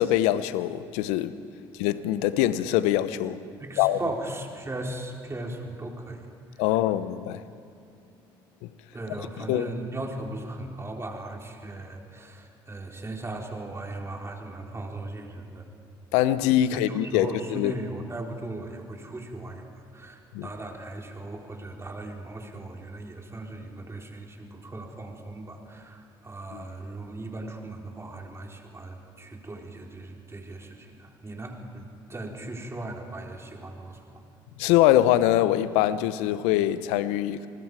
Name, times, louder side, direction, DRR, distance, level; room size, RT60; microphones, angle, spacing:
voice 1, 0.0-1.4 1.8-3.4 3.8-4.0 6.6-7.4 8.6-8.7 9.2-9.7 16.1-17.7 20.3-20.5 26.5-26.6 34.6-37.5, left 13 dB, 80° left, 0.8 m, -23 dB
voice 2, 3.6-6.2 6.5-6.6 8.9-15.7 16.7-34.2, right 2 dB, 25° right, 3.8 m, -38 dB
29.5 x 20.0 x 4.8 m
hypercardioid pair, 60°, 11 cm